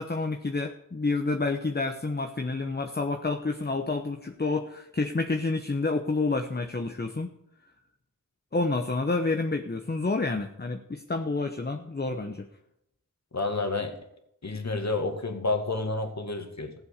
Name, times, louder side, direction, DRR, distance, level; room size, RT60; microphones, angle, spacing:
voice 1, 0.0-7.3 8.5-12.5, left 3 dB, 30° left, 6 dB, 1.0 m, -29 dB
voice 2, 13.3-14.0 14.4-16.7, left 3 dB, 50° left, 6 dB, 2.1 m, -29 dB
15.0 x 7.9 x 6.7 m, 0.81 s
cardioid pair, 45°, 35 cm